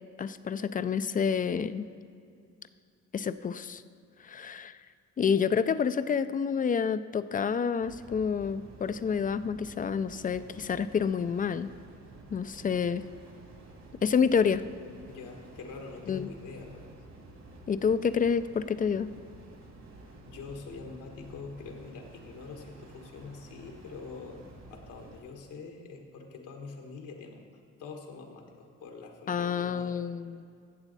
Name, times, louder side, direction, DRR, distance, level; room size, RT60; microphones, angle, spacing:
voice 1, 0.2-1.9 3.1-3.8 4.2-4.8 5.2-11.7 12.3-13.0 14.0-14.6 16.1-16.3 17.7-19.1 29.3-30.4, left 6 dB, 30° left, 14 dB, 0.4 m, -28 dB
sound 1, 7.8-25.2, right 2 dB, 60° right, 2.5 m, -51 dB
voice 2, 15.1-16.9 20.3-30.0, left 4 dB, 85° left, 2 dB, 1.6 m, -45 dB
15.0 x 7.0 x 4.1 m, 2.4 s
cardioid pair, 90°, 30 cm